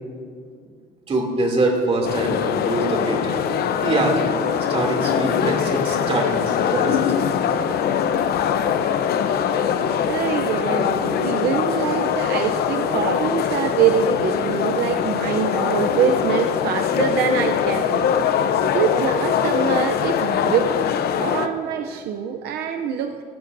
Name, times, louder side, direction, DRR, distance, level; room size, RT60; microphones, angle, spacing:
voice 1, 1.1-3.4 3.8-4.3 4.7-7.0 7.7-8.0, right 2 dB, 35° right, 0 dB, 2.8 m, -24 dB
sound 1, 2.0-21.5, left 8 dB, 70° left, 0.8 m, -22 dB
voice 2, 10.1-18.1 18.4-20.8 21.2-23.2, right 7 dB, 70° right, 5 dB, 0.7 m, -24 dB
18.0 x 13.5 x 2.7 m, 2.2 s
cardioid pair, 110°, 17 cm